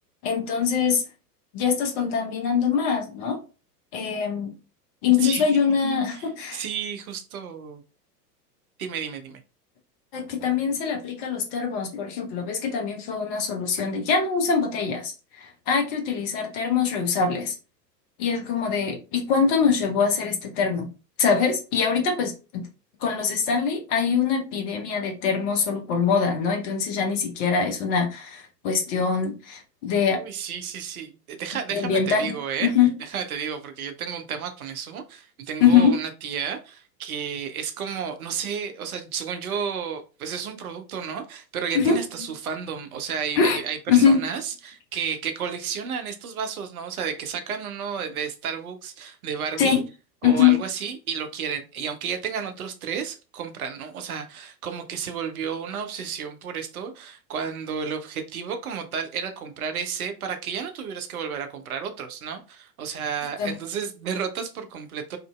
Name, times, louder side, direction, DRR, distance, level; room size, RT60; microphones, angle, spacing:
voice 1, 0.2-1.0 1.5-3.4 3.9-4.5 5.0-6.6 10.1-17.5 18.2-20.9 21.2-22.6 23.0-30.2 31.7-32.3 32.6-32.9 35.6-35.9 41.7-42.0 43.4-43.6 43.9-44.2 49.6-49.8 50.2-50.6 63.4-63.5, left 6 dB, 30° left, 0.7 m, -23 dB
voice 2, 6.5-7.8 8.8-9.4 30.1-32.7 33.0-49.8 50.2-65.2, right 7 dB, 60° right, 0.6 m, -32 dB
2.8 x 2.5 x 2.2 m
figure-of-eight pair, 90°, 49 cm